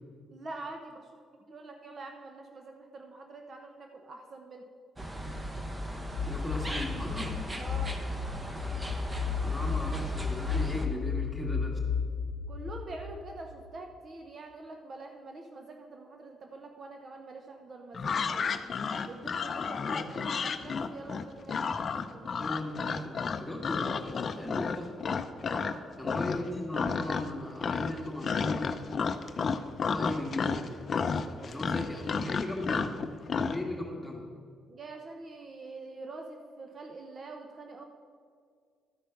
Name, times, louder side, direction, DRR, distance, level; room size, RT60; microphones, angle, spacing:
voice 1, 0.3-1.1 1.5-4.6 7.6-8.0 12.5-18.5 19.0-22.5 25.4-25.8 31.3-31.8 34.7-37.8, right 2 dB, 45° right, 4 dB, 0.8 m, -45 dB
sound 1, 5.0-10.9, right 1 dB, 15° right, 1.0 m, -37 dB
sound 2, 6.2-13.7, left 7 dB, 90° left, 0.8 m, -34 dB
voice 2, 6.2-7.4 9.4-11.7 19.8-20.1 22.4-24.9 26.0-28.8 29.8-30.7 31.4-32.9 33.3-34.2, left 1 dB, 5° left, -1 dB, 2.0 m, -37 dB
sound 3, 17.9-25.8 26.0-26.5 26.7-27.4 27.6-33.6, left 5 dB, 45° left, 0.5 m, -31 dB
12.5 x 5.0 x 5.8 m, 2.1 s
cardioid pair, 90°, 0 cm